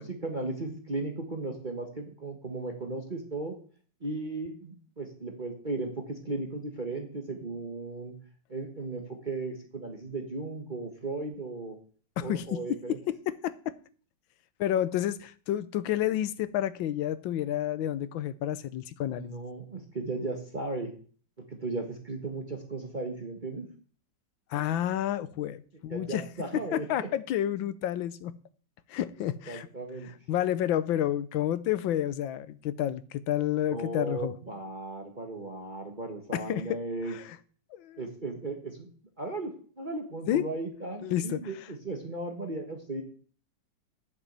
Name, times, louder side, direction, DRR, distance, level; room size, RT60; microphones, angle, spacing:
voice 1, 0.0-3.5 4.0-8.1 8.5-11.8 12.2-13.0 19.1-20.9 21.5-23.7 25.9-27.1 29.5-30.1 33.7-37.1 38.0-38.9 39.2-43.0, right 2 dB, 25° right, 1.5 m, -36 dB
voice 2, 12.2-12.6 13.1-13.7 14.6-19.3 24.5-26.2 26.5-28.4 28.9-29.7 30.3-34.3 36.3-36.8 37.1-37.2 37.7-38.0 40.3-40.4 41.0-41.4, left 11 dB, 80° left, 1.5 m, -30 dB
8.8 x 7.3 x 8.0 m
omnidirectional pair, 2.1 m